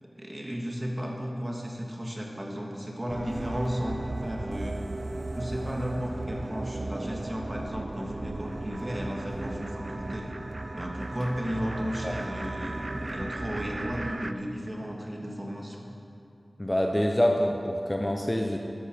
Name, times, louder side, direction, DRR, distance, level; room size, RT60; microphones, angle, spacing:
voice 1, 0.0-4.8 5.3-10.3 10.7-15.8, equal, 20° right, -1 dB, 1.9 m, -34 dB
sound 1, 3.1-14.3, right 2 dB, 40° right, 0.4 m, -36 dB
voice 2, 16.6-18.6, left 1 dB, 15° left, 2 dB, 0.7 m, -26 dB
12.5 x 11.5 x 5.1 m, 2.7 s
wide cardioid pair, 80°, 0 cm